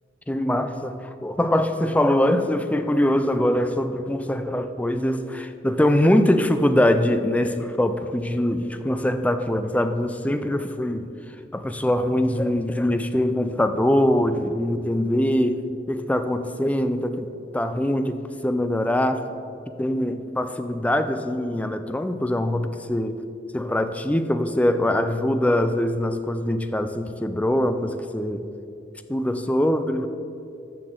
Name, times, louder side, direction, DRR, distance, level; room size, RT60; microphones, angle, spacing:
voice 1, 0.3-11.1 11.5-15.6 15.9-19.2 19.8-23.2 23.5-28.5 29.1-30.1, left 1 dB, 10° left, 9 dB, 0.4 m, -23 dB
13.0 x 6.8 x 3.7 m, 2.6 s
head